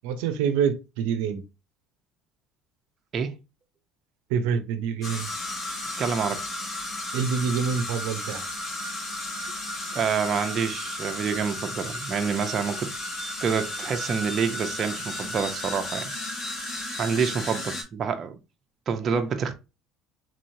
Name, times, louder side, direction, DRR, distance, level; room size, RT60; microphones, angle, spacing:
voice 1, 0.0-1.4 4.3-5.3 7.1-8.4, right 7 dB, 85° right, 0.5 m, -26 dB
sound 1, 5.0-17.8, left 1 dB, 45° left, 2.2 m, -34 dB
voice 2, 6.0-6.4 9.9-12.9 13.4-16.1 17.0-18.4 18.9-19.5, right 6 dB, 40° right, 0.6 m, -27 dB
3.8 x 3.1 x 2.6 m
cardioid pair, 120°, 0 cm